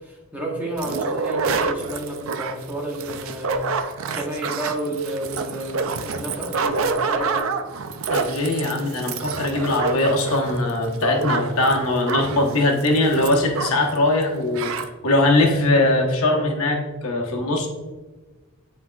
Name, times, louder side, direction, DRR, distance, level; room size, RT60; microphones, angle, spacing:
voice 1, 0.0-3.6 4.1-7.4, right 1 dB, 5° right, -3 dB, 1.0 m, -31 dB
sound 1, 0.8-14.0 14.2-14.3 14.5-14.9, right 4 dB, 65° right, 0.4 m, -27 dB
voice 2, 8.1-17.7, left 2 dB, 70° left, 0 dB, 1.0 m, -21 dB
9.7 x 4.2 x 2.3 m, 1.3 s
head